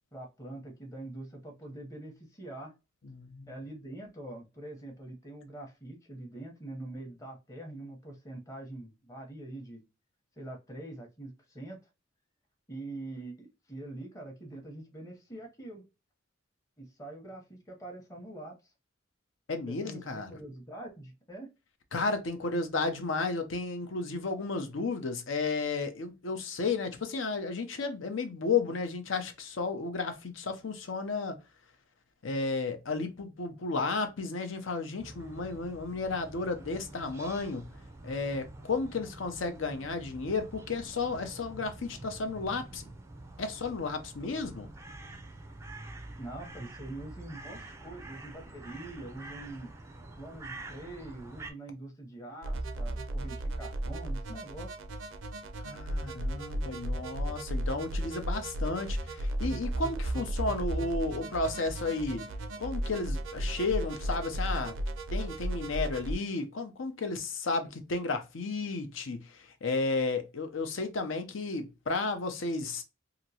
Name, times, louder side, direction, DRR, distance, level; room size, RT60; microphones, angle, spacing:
voice 1, 0.1-2.7 3.5-9.8 10.4-11.8 12.7-15.8 16.8-18.5 19.7-21.5 46.2-49.7 50.2-54.8, right 2 dB, 15° left, 0.7 m, -44 dB
voice 2, 3.0-3.5 19.5-20.3 21.9-31.4 32.2-37.7 38.0-42.9 43.4-44.7 55.6-62.2 62.6-64.8 65.1-72.8, left 3 dB, 85° left, 0.6 m, -33 dB
sound 1, 35.0-51.5, right 2 dB, 15° right, 0.3 m, -47 dB
sound 2, 52.4-66.1, right 1 dB, 85° right, 0.5 m, -34 dB
2.9 x 2.6 x 2.7 m
head